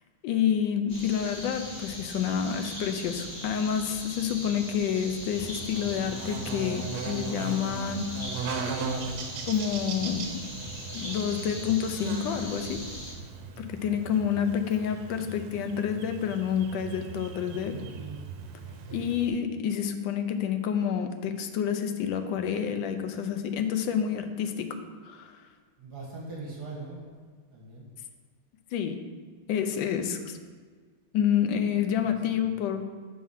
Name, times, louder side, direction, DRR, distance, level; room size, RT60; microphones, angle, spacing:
voice 1, 0.2-8.1 9.5-10.4 10.9-12.8 13.6-17.7 18.9-24.8 25.0-25.5 28.7-29.0 29.5-30.4 31.1-32.9, left 8 dB, 70° left, 7 dB, 1.3 m, -28 dB
sound 1, 0.9-13.1, left 1 dB, 30° left, 2.3 m, -40 dB
Buzz, 5.3-19.3, right 5 dB, 90° right, 1.6 m, -38 dB
voice 2, 17.4-18.2 18.6-19.1 25.8-27.2 27.5-27.9 32.0-32.4, right 3 dB, 50° right, -4 dB, 2.0 m, -42 dB
7.0 x 4.8 x 5.6 m, 1.5 s
omnidirectional pair, 2.3 m